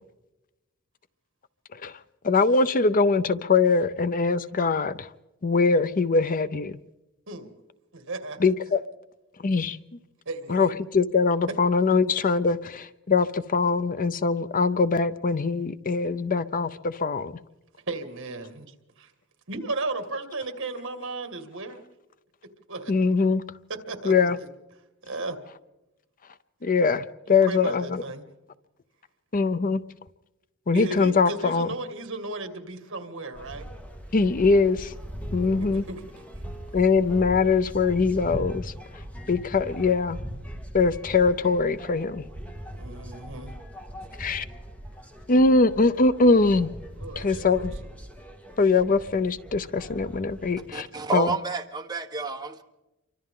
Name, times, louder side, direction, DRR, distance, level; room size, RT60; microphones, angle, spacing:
voice 1, 2.2-5.1 5.4-6.8 8.4-8.8 9.4-9.8 10.5-17.3 22.9-23.4 24.1-24.4 26.6-27.0 27.3-27.9 29.3-29.8 30.7-31.7 34.1-34.9 35.3-35.8 36.7-38.7 39.3-40.2 40.7-42.2 44.2-44.4 45.3-46.7 47.2-47.7 48.6-50.9 51.1-51.3, left 4 dB, 40° left, 0.6 m, -22 dB
voice 2, 7.9-8.5 10.3-10.7 11.8-11.9 17.9-19.1 19.5-21.8 22.7-22.9 23.7-24.5 25.0-25.4 27.3-28.2 30.7-33.7 35.4-36.0 42.7-43.5 46.9-47.7, right 2 dB, 60° right, 2.1 m, -35 dB
sound 1, 33.3-50.7, equal, 5° left, 2.0 m, -40 dB
voice 3, 50.7-52.6, right 4 dB, 20° right, 1.2 m, -30 dB
28.0 x 24.5 x 3.8 m
head